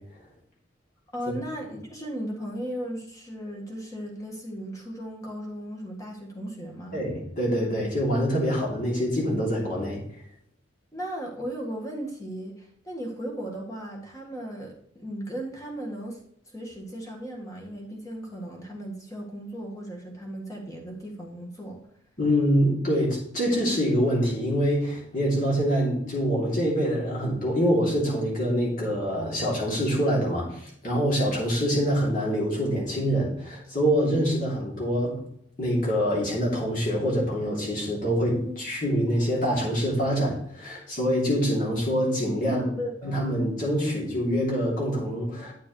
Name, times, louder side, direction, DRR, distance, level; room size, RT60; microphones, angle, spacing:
voice 1, 1.1-7.0 10.9-16.2 16.5-21.8 38.4-38.6 42.4-43.2, right 1 dB, 15° left, 0 dB, 1.7 m, -36 dB
voice 2, 6.9-10.0 22.2-35.2 35.6-42.7 43.0-45.5, equal, 45° left, -4 dB, 2.9 m, -25 dB
9.4 x 6.8 x 3.2 m, 0.67 s
head